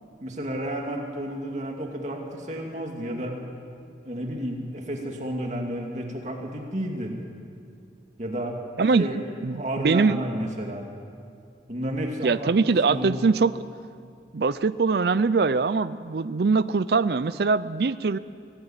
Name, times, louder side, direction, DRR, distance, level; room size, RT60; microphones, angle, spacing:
voice 1, 0.2-3.4 4.0-7.1 8.2-8.6 9.0-9.2 9.5-10.8 11.7-13.2, right 1 dB, 40° right, 1 dB, 2.5 m, -31 dB
voice 2, 9.4-10.2 12.2-13.6 14.3-18.2, right 4 dB, 55° right, 15 dB, 0.5 m, -22 dB
24.5 x 16.5 x 8.9 m, 2.4 s
head